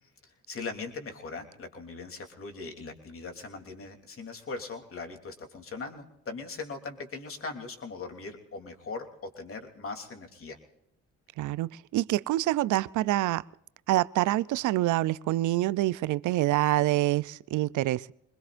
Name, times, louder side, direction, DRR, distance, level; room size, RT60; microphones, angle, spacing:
voice 1, 0.2-9.1 9.4-10.6, left 4 dB, 45° left, 3.2 m, -40 dB
voice 2, 11.4-13.4 13.9-18.1, right 16 dB, 80° right, 0.5 m, -26 dB
25.5 x 21.0 x 2.6 m
cardioid pair, 90°, 30 cm